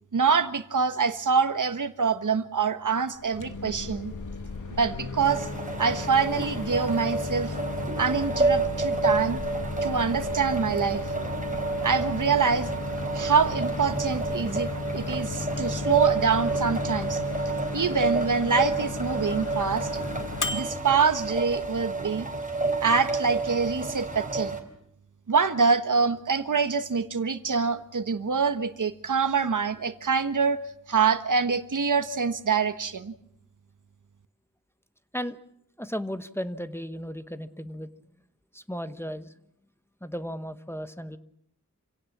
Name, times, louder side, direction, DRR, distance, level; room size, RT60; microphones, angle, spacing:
voice 1, 0.1-4.1 4.7-5.5 5.8-7.5 8.0-9.4 9.8-11.0 11.8-12.7 13.1-17.2 17.7-19.9 20.5-22.3 22.8-24.6 25.3-30.6 30.9-33.1, right 5 dB, 70° right, 10 dB, 1.4 m, -25 dB
Microwave oven, 3.2-22.0, left 3 dB, 75° left, 2.4 m, -36 dB
sound 1, 3.4-17.2, left 5 dB, 50° left, 4.3 m, -42 dB
sound 2, 5.2-24.6, right 3 dB, 25° right, 3.9 m, -30 dB
voice 2, 35.8-37.9 38.5-39.3 40.0-41.2, equal, 10° left, 11 dB, 1.1 m, -35 dB
27.5 x 17.5 x 7.3 m, 0.73 s
wide cardioid pair, 85°, 32 cm